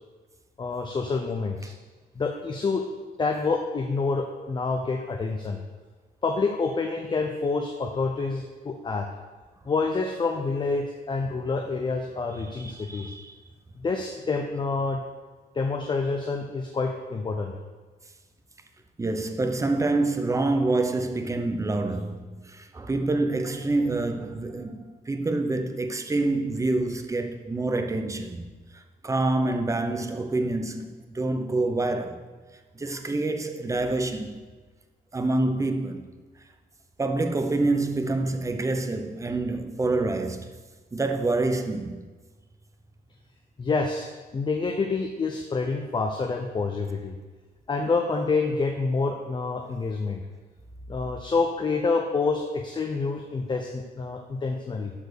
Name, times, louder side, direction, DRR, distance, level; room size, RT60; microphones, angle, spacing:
voice 1, 0.6-1.7 2.2-2.8 3.2-5.6 6.2-9.1 9.7-13.1 13.8-15.0 15.5-17.5 43.6-47.2 47.7-50.2 50.9-54.9, left 4 dB, 25° left, 0.7 m, -27 dB
voice 2, 12.4-13.4 19.0-32.3 32.7-34.4 35.1-36.1 37.0-40.5 40.9-42.0, right 2 dB, 20° right, 0.7 m, -27 dB
12.0 x 4.3 x 6.5 m
wide cardioid pair, 145°, 17 cm